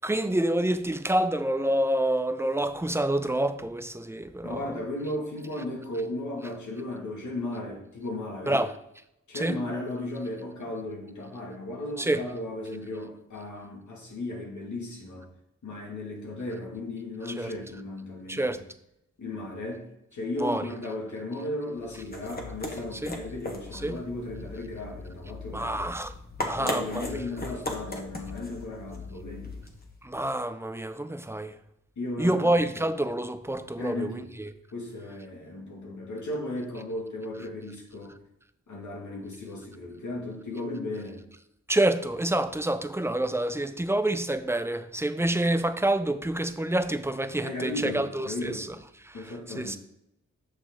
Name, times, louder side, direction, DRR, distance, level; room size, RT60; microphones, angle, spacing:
voice 1, 0.0-4.8 8.5-8.7 9.4-9.5 12.0-12.2 17.4-17.5 18.3-18.6 20.4-20.6 23.0-23.2 23.8-24.0 25.5-26.1 26.4-27.0 30.0-31.5 32.2-34.1 41.7-48.7 49.6-49.8, right 1 dB, 10° right, 0.6 m, -27 dB
voice 2, 4.4-8.6 9.3-15.3 15.6-18.6 19.2-25.8 26.4-29.5 32.0-32.5 33.8-34.3 34.7-38.1 38.7-41.2 47.4-48.6 49.1-49.8, left 1 dB, 90° left, 2.4 m, -35 dB
sound 1, 21.8-30.0, left 2 dB, 30° left, 1.4 m, -38 dB
9.2 x 6.6 x 3.8 m
wide cardioid pair, 85°, 29 cm